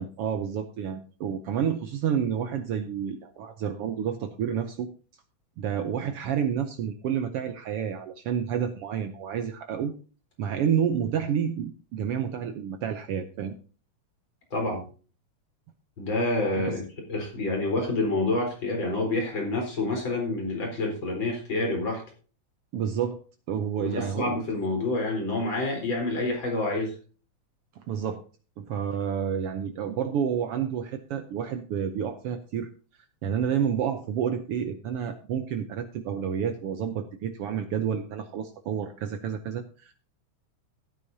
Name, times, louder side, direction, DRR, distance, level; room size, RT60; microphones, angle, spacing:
voice 1, 0.0-4.9 5.6-9.9 10.4-13.5 16.6-16.8 22.7-23.2 23.5-24.4 27.9-28.2 28.6-32.7 33.2-39.9, right 8 dB, 85° right, 7 dB, 1.2 m, -29 dB
voice 2, 14.5-14.8 16.0-16.8 17.1-22.0 23.8-26.9, left 2 dB, 35° left, 0 dB, 4.6 m, -28 dB
15.5 x 9.4 x 2.7 m, 0.37 s
omnidirectional pair, 3.6 m